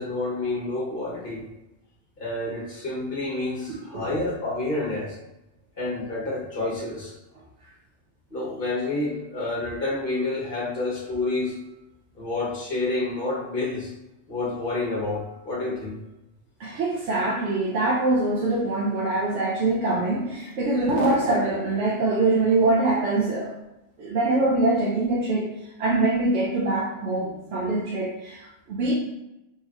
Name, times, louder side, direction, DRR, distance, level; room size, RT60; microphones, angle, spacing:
voice 1, 0.0-1.4 2.2-5.2 5.8-7.1 8.3-11.6 12.1-13.9 14.3-16.0, left 2 dB, 50° left, -4 dB, 1.2 m, -29 dB
voice 2, 3.7-4.1 16.6-23.5 24.0-25.5 25.8-28.9, right 2 dB, 85° right, -5 dB, 1.0 m, -24 dB
4.2 x 2.9 x 2.4 m, 0.93 s
omnidirectional pair, 1.2 m